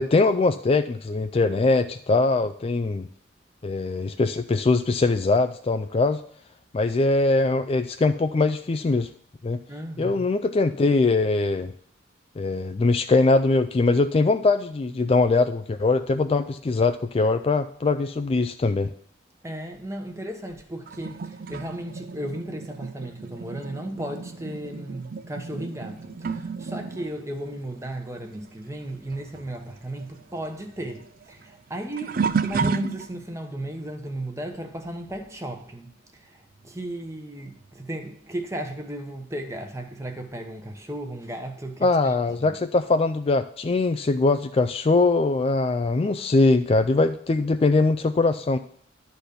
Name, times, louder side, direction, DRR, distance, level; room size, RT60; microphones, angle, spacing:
voice 1, 0.0-3.1 3.6-6.2 6.7-9.1 9.4-9.6 10.0-11.7 12.4-18.9 41.8-48.6, left 3 dB, 30° left, 0.3 m, -22 dB
voice 2, 9.7-10.3 19.4-42.1 42.4-42.5, right 1 dB, 15° right, 1.0 m, -35 dB
sound 1, 20.9-28.9 29.1-33.4 34.1-34.4 36.6-36.7 37.6-37.7, right 5 dB, 50° right, 0.4 m, -33 dB
11.5 x 4.1 x 6.8 m
head